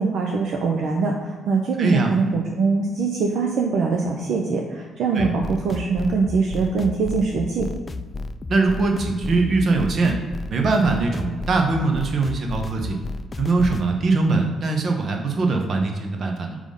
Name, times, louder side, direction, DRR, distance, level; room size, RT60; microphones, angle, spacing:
voice 1, 0.0-7.7, right 4 dB, 75° right, 1 dB, 0.6 m, -23 dB
voice 2, 1.8-2.1 5.1-5.3 8.5-10.2 10.5-13.0 13.4-16.6, right 3 dB, 55° right, 3 dB, 0.9 m, -21 dB
sound 1, 5.2-13.9, left 3 dB, 30° left, 0.3 m, -33 dB
4.9 x 3.7 x 5.3 m, 1.4 s
cardioid pair, 90°, 0 cm